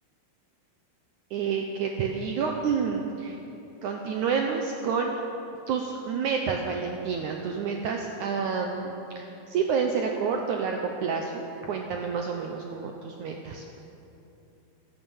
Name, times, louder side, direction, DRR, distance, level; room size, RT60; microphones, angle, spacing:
voice 1, 1.3-3.4 3.8-5.1 5.7-13.7, right 6 dB, 80° right, 2 dB, 1.8 m, -29 dB
14.5 x 13.0 x 7.1 m, 2.9 s
omnidirectional pair, 4.5 m